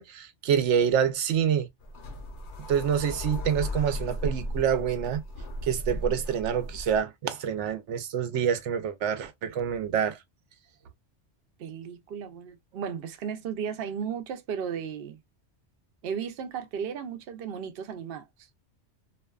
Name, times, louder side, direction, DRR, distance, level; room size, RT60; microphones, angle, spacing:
voice 1, 0.0-1.7 2.7-5.2 5.6-10.2, right 8 dB, 90° right, 0.9 m, -27 dB
sound 1, 1.8-7.0, equal, 80° left, 1.0 m, -36 dB
voice 2, 11.6-15.2 16.0-18.2, right 7 dB, 65° right, 0.8 m, -35 dB
2.6 x 2.2 x 2.2 m
omnidirectional pair, 1.2 m